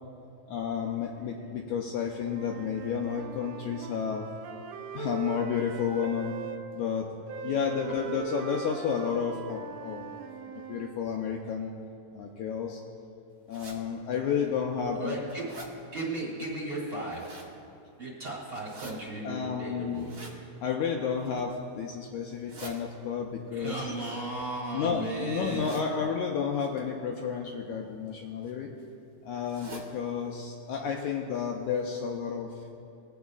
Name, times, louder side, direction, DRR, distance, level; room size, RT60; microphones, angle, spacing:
voice 1, 0.5-4.3 4.9-6.3 6.7-7.1 7.4-10.2 10.7-11.7 12.1-12.8 13.5-15.2 19.2-20.1 20.6-23.9 24.7-28.7 29.3-32.5, left 7 dB, 80° left, 0 dB, 1.9 m, -31 dB
Wind instrument woodwind instrument, 2.2-6.6 7.3-11.0, right 8 dB, 80° right, 1.9 m, -40 dB
sound 1, 13.5-13.8 14.4-14.5 14.9-15.7 16.8-17.5 18.5-18.9 19.9-20.4 21.1-21.5 22.2-22.7 23.9-24.9 25.5-25.9 26.6-26.8 27.8-28.1 28.4-28.5 28.8-28.9 29.4-29.9 30.3-30.4 30.7-30.8 31.3-31.4 31.7-31.8, right 3 dB, 45° right, 1.4 m, -47 dB
voice 2, 15.0-17.6 18.0-20.2 23.5-25.8, right 2 dB, 30° right, -6 dB, 2.2 m, -36 dB
22.0 x 8.2 x 2.4 m, 2.4 s
omnidirectional pair, 3.9 m